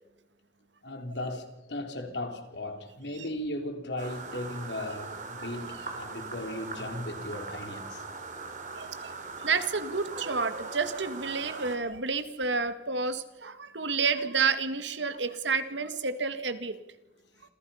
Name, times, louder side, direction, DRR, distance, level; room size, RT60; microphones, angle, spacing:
voice 1, 0.8-8.0, left 1 dB, 75° left, 3.8 m, -37 dB
sound 1, 4.0-11.8, right 3 dB, 45° right, 3.7 m, -40 dB
voice 2, 8.8-9.1 9.4-16.8, right 4 dB, 90° right, 2.0 m, -30 dB
27.5 x 27.5 x 5.8 m
head